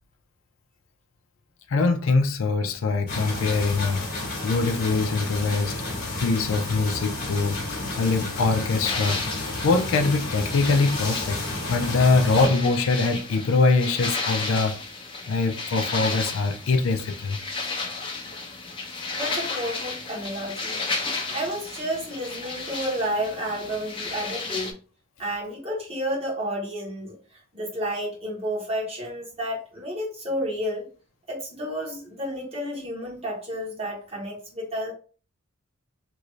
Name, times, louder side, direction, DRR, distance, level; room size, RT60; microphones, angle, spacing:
voice 1, 1.7-4.1 4.4-5.8 6.2-11.4 11.7-14.8 15.3-17.4, left 3 dB, 75° left, 0.5 m, -23 dB
sound 1, 3.1-12.5, left 2 dB, 50° left, 1.1 m, -31 dB
sound 2, 8.8-24.7, left 3 dB, 25° left, 0.7 m, -33 dB
voice 2, 19.1-20.8 21.3-24.7 25.2-27.2 27.5-30.9 31.3-34.9, equal, 30° right, 1.3 m, -31 dB
3.0 x 2.6 x 3.0 m
head